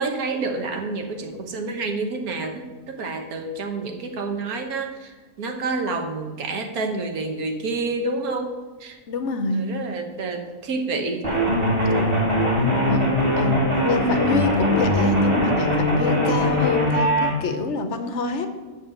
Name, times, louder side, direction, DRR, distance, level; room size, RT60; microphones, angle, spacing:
voice 1, 0.0-9.0 9.5-11.3, right 3 dB, 70° right, 5 dB, 1.5 m, -28 dB
voice 2, 9.1-9.6 12.8-13.1 13.4-18.5, left 4 dB, 55° left, 7 dB, 0.9 m, -27 dB
sound 1, 11.2-17.3, equal, 20° right, 1.6 m, -20 dB
7.3 x 6.7 x 6.5 m, 1.3 s
omnidirectional pair, 1.7 m